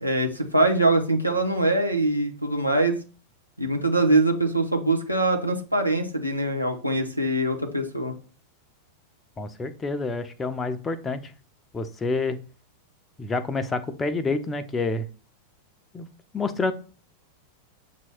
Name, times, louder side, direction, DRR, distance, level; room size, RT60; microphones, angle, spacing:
voice 1, 0.0-3.0 3.6-8.1, right 2 dB, 90° right, 1 dB, 1.0 m, -23 dB
voice 2, 9.4-11.3 11.7-12.4 13.2-15.1 15.9-16.1 16.3-16.7, left 3 dB, 15° left, 10 dB, 0.6 m, -28 dB
7.6 x 3.0 x 4.4 m, 0.37 s
figure-of-eight pair, 90°, 0 cm